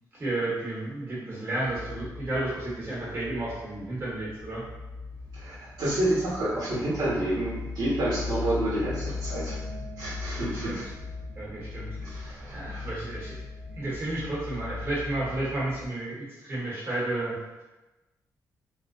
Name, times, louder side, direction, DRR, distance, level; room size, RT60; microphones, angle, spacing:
voice 1, 0.1-4.6 10.5-10.8 11.4-13.4 13.7-17.3, right 2 dB, 35° right, -7 dB, 0.9 m, -32 dB
sound 1, 1.6-15.9, left 4 dB, 55° right, 0.5 m, -39 dB
voice 2, 5.3-9.6 10.0-10.8 12.0-12.9, right 1 dB, 80° right, -10 dB, 0.9 m, -29 dB
2.5 x 2.0 x 2.5 m, 1.1 s
cardioid pair, 105°, 7 cm